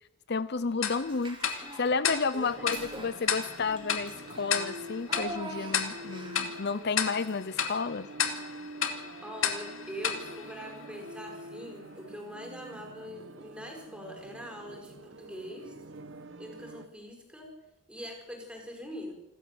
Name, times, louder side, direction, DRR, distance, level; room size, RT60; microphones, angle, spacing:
voice 1, 0.3-8.1, left 4 dB, 55° left, 15 dB, 0.7 m, -32 dB
Tick-tock, 0.8-11.3, left 7 dB, 85° left, 2.6 m, -34 dB
Child speech kid speaking / Bathtub (filling or washing), 1.0-2.0 2.3-6.6, right 2 dB, 25° right, 4.4 m, -44 dB
voice 2, 2.3-2.7 9.2-15.7 16.4-17.5 17.9-19.1, equal, 5° right, 1 dB, 5.8 m, -43 dB
sound 1, 2.4-16.9, right 1 dB, 65° right, 1.2 m, -47 dB
28.0 x 12.5 x 7.8 m, 0.96 s
head